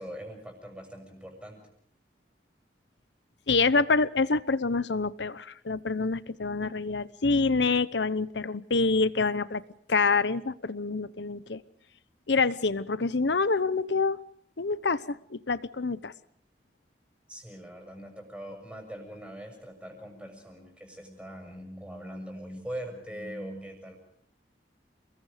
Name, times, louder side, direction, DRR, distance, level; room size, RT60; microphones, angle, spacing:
voice 1, 0.0-1.6 17.3-24.0, equal, 5° right, 3 dB, 6.7 m, -41 dB
voice 2, 3.5-9.6 9.9-11.6 12.3-14.2 14.6-16.1, left 4 dB, 80° left, 16 dB, 0.9 m, -26 dB
30.0 x 21.5 x 5.1 m, 0.62 s
head